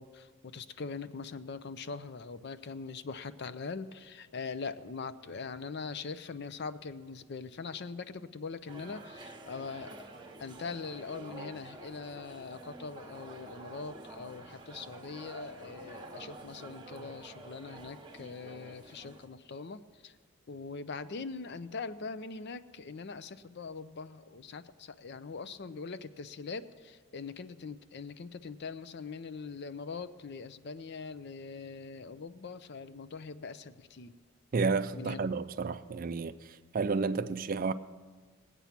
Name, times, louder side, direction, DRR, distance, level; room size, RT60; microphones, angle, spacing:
voice 1, 0.0-9.9 10.4-20.2 20.5-34.1 34.9-35.2, left 4 dB, 50° left, 0.5 m, -42 dB
sound 1, 8.7-19.3, right 2 dB, 20° right, 1.0 m, -49 dB
voice 2, 34.5-36.3 36.7-37.7, right 4 dB, 40° right, 0.4 m, -31 dB
20.0 x 8.2 x 5.9 m
head